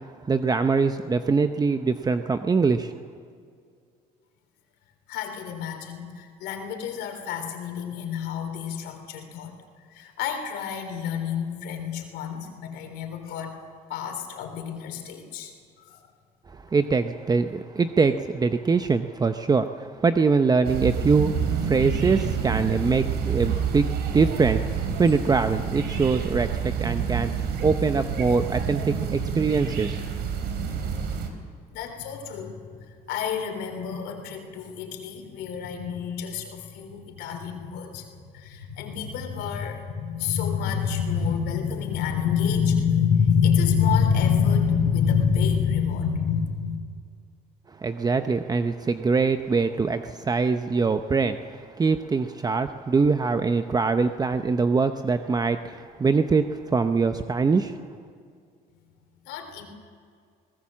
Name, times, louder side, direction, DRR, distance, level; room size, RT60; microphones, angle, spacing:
voice 1, 0.2-3.0 16.5-27.3 27.6-29.9 47.8-57.8, right 4 dB, 25° right, 9 dB, 0.7 m, -23 dB
voice 2, 5.1-13.6 13.9-16.1 31.0-31.1 31.7-46.8 59.2-59.7, left 7 dB, 90° left, 5 dB, 3.5 m, -27 dB
sound 1, 20.6-31.3, right 7 dB, 80° right, 3.0 m, -28 dB
22.0 x 19.0 x 7.5 m, 2.2 s
cardioid pair, 110°, 17 cm